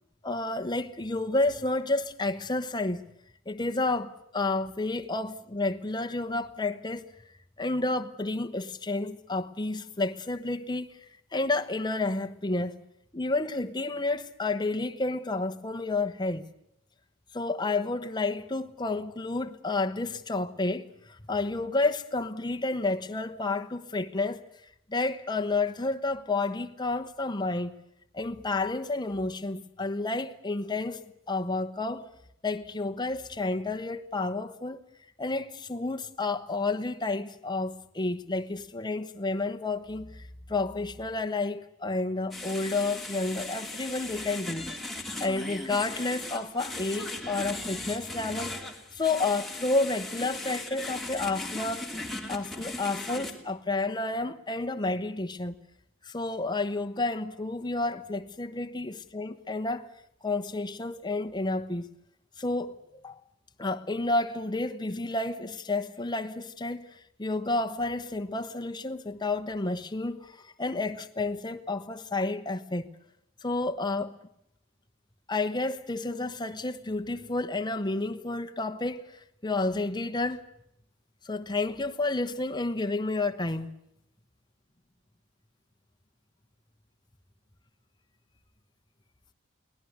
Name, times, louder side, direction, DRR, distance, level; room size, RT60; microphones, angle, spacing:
voice 1, 0.2-3.0 3.5-7.1 7.6-10.9 11.3-12.8 13.1-16.5 17.3-24.4 24.9-27.8 28.1-32.0 32.4-34.8 35.2-40.2 40.5-44.6 45.2-48.6 48.9-51.9 52.3-55.5 56.0-59.9 60.2-61.9 62.4-63.2 63.6-72.9 73.4-74.2 75.3-80.5 81.2-83.7, left 2 dB, 20° left, 1.1 m, -30 dB
sound 1, 42.3-53.3, left 2 dB, ahead, 2.8 m, -38 dB
23.0 x 18.0 x 9.5 m
head